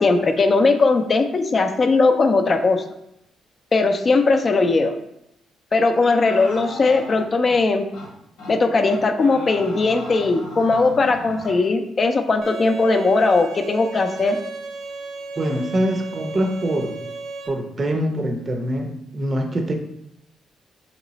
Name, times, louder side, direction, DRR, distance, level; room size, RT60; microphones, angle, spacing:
voice 1, 0.0-2.8 3.7-5.0 5.7-7.9 8.5-14.4, left 3 dB, 40° left, 7 dB, 0.4 m, -19 dB
sound 1, 6.2-7.6 7.9-8.1 8.4-8.6 8.8-11.6, left 1 dB, 90° left, 1.0 m, -37 dB
Bowed string instrument, 12.4-17.5, right 3 dB, 75° right, 0.7 m, -34 dB
voice 2, 15.4-17.0 17.5-19.7, right 1 dB, 35° right, 4 dB, 0.6 m, -24 dB
3.1 x 3.0 x 3.9 m, 0.81 s
cardioid pair, 90°, 0 cm